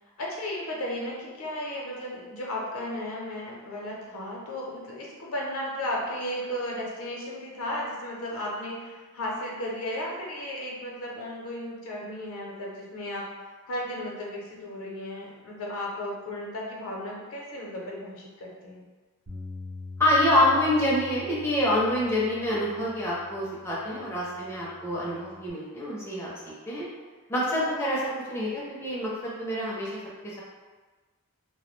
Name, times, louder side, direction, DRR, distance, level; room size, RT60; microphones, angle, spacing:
voice 1, 0.2-18.8, left 1 dB, 70° left, -3 dB, 0.6 m, -35 dB
Bass guitar, 19.3-25.5, left 3 dB, 55° right, 0.8 m, -45 dB
voice 2, 20.0-26.9 27.3-28.0 28.3-30.4, left 1 dB, 10° left, -7 dB, 0.4 m, -26 dB
2.2 x 2.1 x 3.0 m, 1.3 s
head